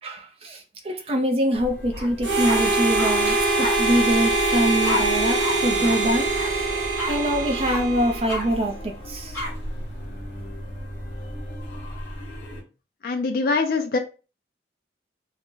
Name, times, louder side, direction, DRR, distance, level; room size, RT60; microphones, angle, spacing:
voice 1, 0.0-6.3 7.1-8.7 9.1-9.4, right 1 dB, 30° right, 0.5 m, -24 dB
sound 1, 1.5-12.6, equal, 80° left, 0.9 m, -36 dB
sound 2, 1.9-2.1 2.4-3.1 3.6-3.7 4.8-5.0 5.4-5.5 5.8-6.0 6.3-6.5 7.0-7.1 7.6-7.8 8.3-8.4 9.3-9.5, left 2 dB, 15° left, 0.9 m, -29 dB
Harmonica, 2.2-8.6, right 2 dB, 75° right, 0.6 m, -23 dB
voice 2, 13.0-14.0, left 4 dB, 50° left, 0.3 m, -23 dB
2.4 x 2.1 x 3.7 m
head